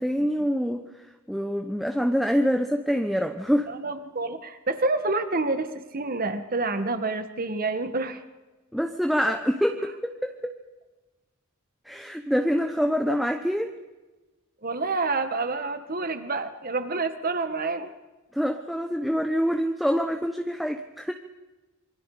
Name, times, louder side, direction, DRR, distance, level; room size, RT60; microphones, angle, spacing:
voice 1, 0.0-3.7 8.7-10.5 11.8-13.7 18.3-21.1, equal, ahead, 4 dB, 1.0 m, -26 dB
voice 2, 3.7-8.2 14.6-17.9, right 3 dB, 45° right, 9 dB, 1.8 m, -28 dB
26.5 x 24.0 x 5.1 m, 1.2 s
head